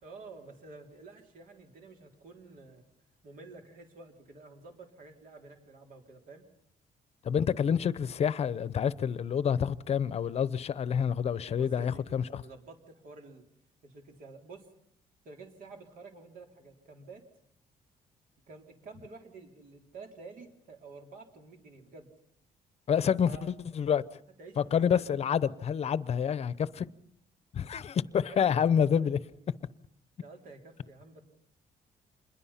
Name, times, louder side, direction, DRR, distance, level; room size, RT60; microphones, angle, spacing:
voice 1, 0.0-2.8 3.2-6.4 11.5-13.4 13.8-14.7 15.2-17.2 18.5-22.1 23.3-23.5 24.4-25.1 28.2-29.0 30.2-31.2, right 3 dB, 70° right, 3.9 m, -50 dB
voice 2, 7.2-12.4 22.9-24.0 24.6-26.9 27.5-29.2, left 8 dB, 45° left, 0.8 m, -28 dB
27.5 x 21.5 x 5.8 m
cardioid pair, 140°, 15 cm